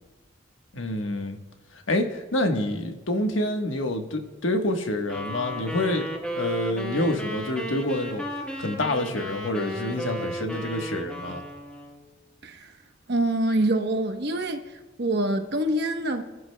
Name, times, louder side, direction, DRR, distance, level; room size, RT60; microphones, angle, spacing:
voice 1, 0.7-1.4 1.9-8.2 8.6-11.4, left 1 dB, 85° left, 4 dB, 1.3 m, -27 dB
sound 1, 5.1-12.1, equal, 5° left, 1.3 m, -34 dB
voice 2, 13.1-14.7 15.0-16.2, right 1 dB, 55° right, 6 dB, 1.0 m, -25 dB
28.5 x 11.5 x 2.3 m, 1.2 s
head